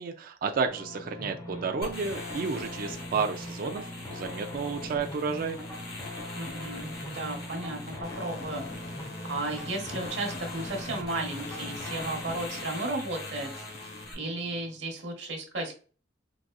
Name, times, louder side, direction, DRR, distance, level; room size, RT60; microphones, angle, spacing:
voice 1, 0.0-3.8 4.1-5.6, right 5 dB, 50° right, 5 dB, 0.3 m, -31 dB
sound 1, 0.7-14.8, left 1 dB, 20° left, 1.0 m, -41 dB
sound 2, 1.8-14.1, left 2 dB, 55° left, 1.2 m, -43 dB
voice 2, 6.3-8.7 9.3-15.7, right 2 dB, 80° right, 2 dB, 1.0 m, -34 dB
4.0 x 2.4 x 2.2 m, 0.39 s
head